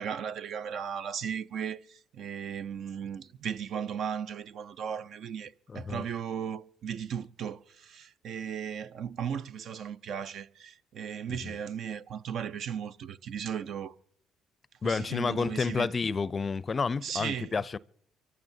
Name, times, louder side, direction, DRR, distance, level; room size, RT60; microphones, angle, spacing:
voice 1, 0.0-13.9 14.8-15.9 17.0-17.6, right 8 dB, 65° right, 0.5 m, -36 dB
voice 2, 5.7-6.0 11.4-11.5 14.8-17.8, left 5 dB, 35° left, 0.4 m, -30 dB
24.5 x 14.5 x 2.7 m
supercardioid pair, 70°, 0 cm